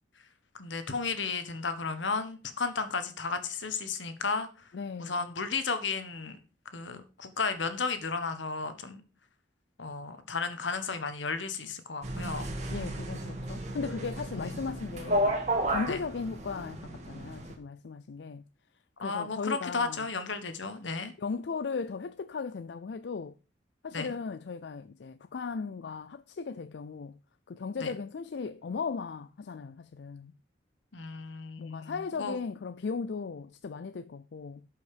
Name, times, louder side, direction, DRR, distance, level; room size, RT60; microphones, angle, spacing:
voice 1, 0.5-4.7 5.0-6.4 6.7-9.0 9.8-12.5 14.4-14.5 15.9-16.0 19.0-21.1 23.9-24.1 27.8-27.9 30.9-32.4, left 4 dB, 85° left, 1.4 m, -34 dB
voice 2, 4.7-5.3 12.7-15.4 15.7-18.4 19.0-20.1 21.2-23.3 23.8-27.2 27.5-30.3 31.6-34.7, left 5 dB, 65° left, 0.4 m, -37 dB
sound 1, 12.0-17.5, right 1 dB, 40° right, 1.9 m, -33 dB
12.0 x 5.5 x 5.0 m
head